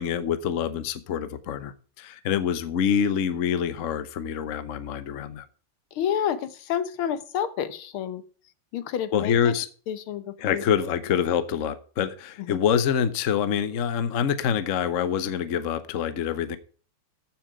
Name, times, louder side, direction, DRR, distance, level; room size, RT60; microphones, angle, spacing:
voice 1, 0.0-5.5 9.1-9.7 10.4-16.6, left 8 dB, 55° left, 12 dB, 0.9 m, -26 dB
voice 2, 5.9-8.2 8.7-9.6 9.9-10.6 12.4-12.6, left 9 dB, 75° left, 12 dB, 1.8 m, -29 dB
14.0 x 6.1 x 4.9 m, 0.40 s
omnidirectional pair, 2.3 m